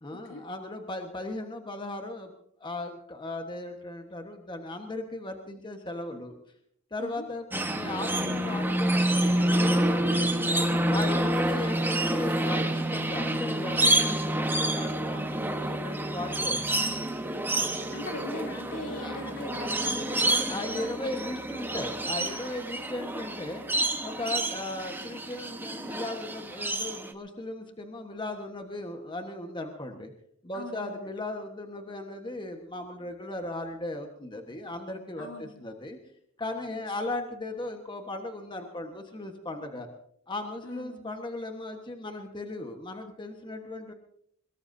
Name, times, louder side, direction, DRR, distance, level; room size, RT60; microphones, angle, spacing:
voice 1, 0.0-2.3 2.6-6.3 6.9-10.4 10.9-16.8 17.5-17.8 18.9-19.2 20.5-23.6 24.0-30.1 30.4-36.0 36.4-39.9 40.3-43.9, left 2 dB, 25° left, 4 dB, 1.3 m, -37 dB
sound 1, 7.5-27.1, right 1 dB, 10° right, 1.2 m, -28 dB
voice 2, 11.1-11.5 17.6-21.4 30.5-31.2 35.2-35.7 36.7-36.8 40.6-41.1, left 2 dB, 70° left, 2 dB, 2.9 m, -41 dB
23.0 x 21.5 x 2.7 m, 0.68 s
head